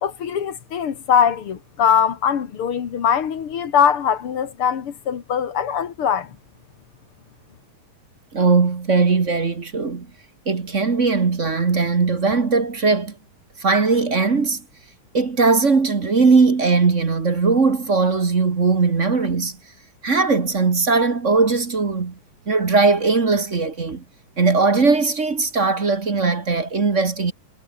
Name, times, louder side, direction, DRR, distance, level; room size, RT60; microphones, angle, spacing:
voice 1, 0.0-6.4, left 8 dB, 85° left, 2.8 m, -21 dB
voice 2, 8.3-10.1 10.5-13.2 13.6-14.6 15.1-19.6 20.0-22.1 22.5-24.0 24.4-27.3, right 4 dB, 35° right, 2.0 m, -19 dB
omnidirectional pair, 2.4 m